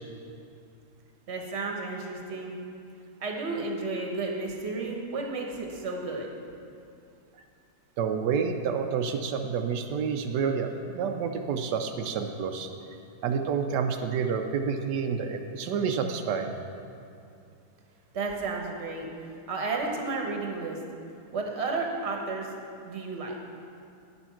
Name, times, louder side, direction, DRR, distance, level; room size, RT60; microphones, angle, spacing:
voice 1, 1.3-2.6 3.2-6.3 18.1-19.1 19.5-20.8 21.3-22.5 22.8-23.4, right 3 dB, 45° right, 1 dB, 1.3 m, -32 dB
voice 2, 8.0-12.7 13.2-16.5, right 6 dB, 85° right, 5 dB, 1.2 m, -29 dB
9.7 x 6.9 x 5.8 m, 2.6 s
omnidirectional pair, 1.8 m